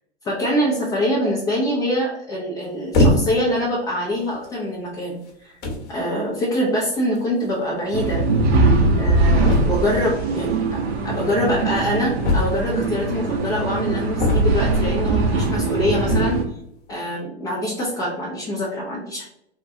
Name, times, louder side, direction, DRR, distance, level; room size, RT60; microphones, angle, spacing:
voice 1, 0.2-5.5 5.9-8.2 9.0-16.5 16.9-19.2, equal, 10° left, -5 dB, 0.3 m, -24 dB
sound 1, 2.9-3.5 4.3-4.5 5.3-5.4 5.6-5.9 7.2-7.3 7.5-7.6 7.8-7.9 9.4-10.0 12.2-12.9 14.2-14.8 16.0-16.5, left 2 dB, 40° left, 0.8 m, -21 dB
sound 2, 7.9-16.4, right 3 dB, 65° right, 0.7 m, -21 dB
3.5 x 2.2 x 2.6 m, 0.77 s
figure-of-eight pair, 95°, 33 cm